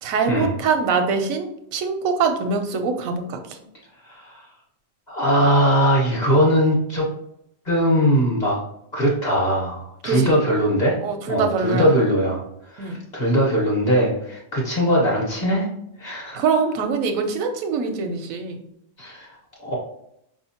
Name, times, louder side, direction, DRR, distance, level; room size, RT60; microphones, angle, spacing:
voice 1, 0.0-3.6 10.0-10.4 11.0-11.9 12.8-13.0 16.3-18.6, right 5 dB, 90° right, 6 dB, 1.0 m, -23 dB
voice 2, 4.0-4.4 5.1-7.1 7.6-8.6 8.9-11.0 11.3-12.4 12.7-15.7 16.0-16.4 19.0-19.3 19.6-19.7, equal, 35° left, -3 dB, 1.1 m, -20 dB
4.8 x 2.8 x 2.8 m, 0.74 s
omnidirectional pair, 1.4 m